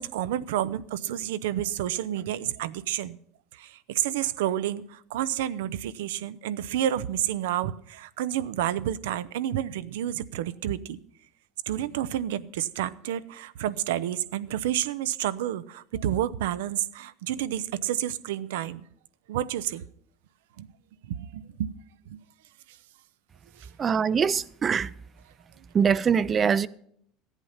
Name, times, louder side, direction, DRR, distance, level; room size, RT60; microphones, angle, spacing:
voice 1, 0.0-3.2 3.5-11.0 11.7-18.8 19.3-19.8 20.6-20.7 21.1-21.7 22.1-22.2 23.6-23.7, right 11 dB, 90° right, 0.5 m, -30 dB
voice 2, 23.8-24.9 25.7-26.7, right 6 dB, 30° right, 0.4 m, -23 dB
14.0 x 8.1 x 5.6 m
supercardioid pair, 120°, 0 cm